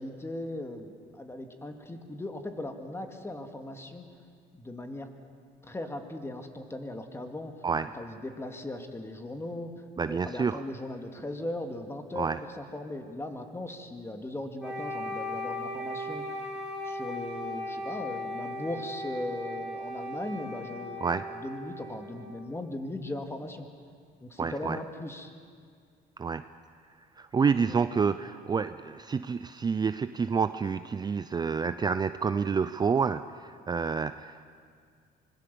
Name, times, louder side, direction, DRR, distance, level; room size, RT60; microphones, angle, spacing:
voice 1, 0.0-4.0 4.6-5.1 5.6-7.5 7.9-9.7 10.1-12.3 12.5-16.3 16.8-23.7 24.2-25.3 27.7-27.8, left 1 dB, 15° left, 5 dB, 2.2 m, -38 dB
voice 2, 10.0-10.6 12.2-12.4 21.0-21.2 24.4-24.8 26.2-26.4 27.2-34.4, right 5 dB, 25° right, 12 dB, 0.5 m, -28 dB
Wind instrument woodwind instrument, 14.6-22.6, left 1 dB, 5° right, 6.2 m, -37 dB
25.0 x 21.0 x 7.0 m, 2.1 s
cardioid pair, 110°, 17 cm